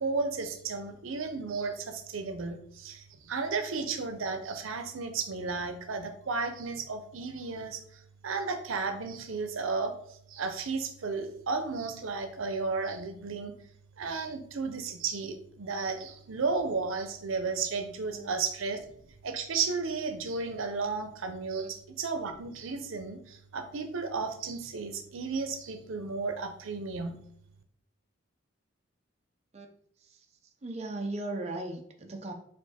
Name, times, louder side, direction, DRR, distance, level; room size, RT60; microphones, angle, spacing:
voice 1, 0.0-7.8 8.2-9.9 10.3-13.5 14.0-18.8 19.2-27.2, right 4 dB, 85° right, 7 dB, 0.6 m, -33 dB
voice 2, 30.6-32.3, right 2 dB, 30° right, 3 dB, 0.4 m, -37 dB
4.4 x 2.5 x 4.1 m, 0.70 s
head